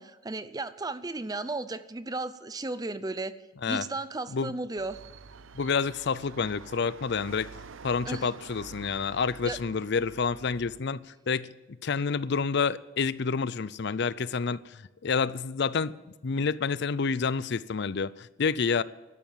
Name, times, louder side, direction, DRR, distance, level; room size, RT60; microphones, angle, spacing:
voice 1, 0.0-3.3 3.7-5.0 8.1-8.3 9.5-9.6, right 2 dB, 20° right, 0.6 m, -34 dB
sound 1, 4.8-10.8, right 5 dB, 70° right, 0.7 m, -47 dB
voice 2, 5.5-7.5 7.8-11.0 11.3-11.5 11.8-16.0 16.2-18.8, left 5 dB, 55° left, 0.5 m, -28 dB
12.5 x 11.5 x 7.4 m
head